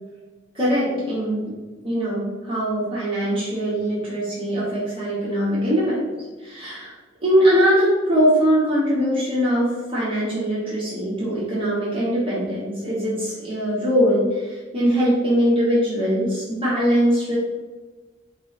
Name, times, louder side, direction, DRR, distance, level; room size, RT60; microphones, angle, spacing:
voice 1, 0.5-1.6 1.8-6.0 6.4-6.9 7.2-17.4, equal, 30° right, -9 dB, 1.2 m, -21 dB
4.1 x 3.3 x 3.2 m, 1.3 s
head